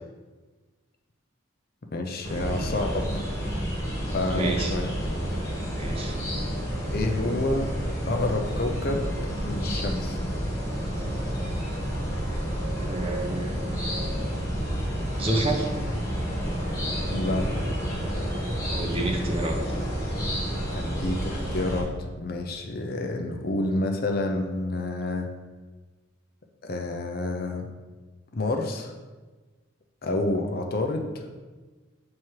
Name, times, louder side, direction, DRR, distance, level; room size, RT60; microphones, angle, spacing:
voice 1, 1.9-3.2 4.1-4.9 6.9-7.7 8.1-9.1 9.4-10.2 17.1-17.5 20.7-25.3 26.6-27.7 28.3-28.9 30.0-31.3, left 2 dB, 45° left, 3 dB, 0.6 m, -29 dB
sound 1, 2.2-21.8, equal, 15° left, 1.5 m, -30 dB
voice 2, 4.3-4.8 5.7-6.1 12.9-13.8 15.2-15.7 18.7-19.6, right 2 dB, 30° right, 2 dB, 0.7 m, -29 dB
7.1 x 3.2 x 4.6 m, 1.3 s
head